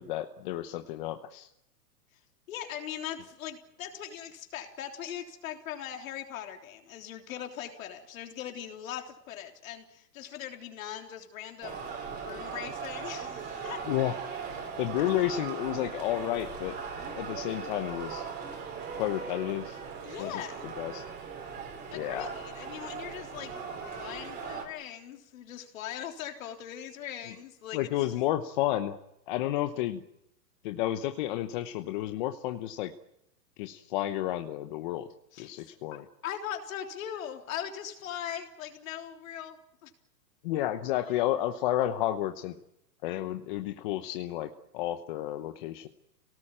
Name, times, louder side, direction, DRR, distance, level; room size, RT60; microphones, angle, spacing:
voice 1, 0.0-1.5 13.9-14.1 14.8-16.8 17.1-18.3 19.0-19.8 20.2-20.4 20.8-21.0 21.9-22.3 27.7-29.0 29.3-30.0 30.6-32.9 33.6-35.1 35.4-36.0 40.4-42.6 43.0-45.9, left 13 dB, 30° left, 8 dB, 1.0 m, -31 dB
voice 2, 2.5-13.8 20.0-20.7 21.9-23.6 24.0-28.2 35.3-39.9 41.0-41.1, left 10 dB, 55° left, 4 dB, 3.7 m, -40 dB
sound 1, 11.6-24.7, right 5 dB, 20° right, 3.7 m, -39 dB
26.5 x 18.5 x 8.9 m, 0.82 s
hypercardioid pair, 155°, 48 cm